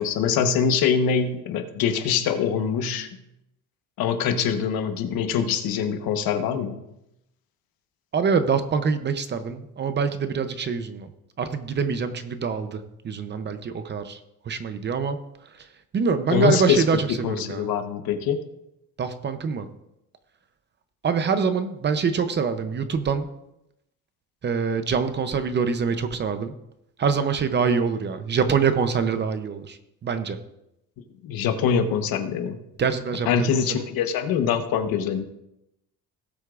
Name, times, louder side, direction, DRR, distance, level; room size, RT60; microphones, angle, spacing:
voice 1, 0.0-3.1 4.0-6.8 16.3-16.8 17.2-18.4 31.2-32.6 33.3-35.2, left 7 dB, 85° left, 8 dB, 1.2 m, -24 dB
voice 2, 8.1-11.1 11.4-14.2 14.4-15.2 15.4-15.7 15.9-17.7 19.0-19.7 21.0-23.3 24.4-26.5 27.0-30.4 32.8-33.8, right 5 dB, 30° right, 9 dB, 0.7 m, -25 dB
18.0 x 8.0 x 2.5 m, 0.85 s
cardioid pair, 165°, 35 cm